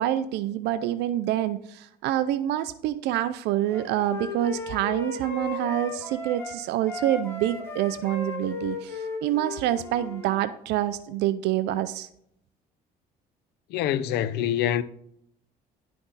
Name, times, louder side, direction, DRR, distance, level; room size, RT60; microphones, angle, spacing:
voice 1, 0.0-12.1, right 12 dB, 85° right, 0.5 m, -27 dB
Wind instrument woodwind instrument, 3.7-6.6 6.9-10.4, left 3 dB, 15° left, 2.6 m, -36 dB
voice 2, 13.7-14.8, left 10 dB, 80° left, 0.6 m, -25 dB
11.5 x 5.9 x 4.0 m
cardioid pair, 110°, 17 cm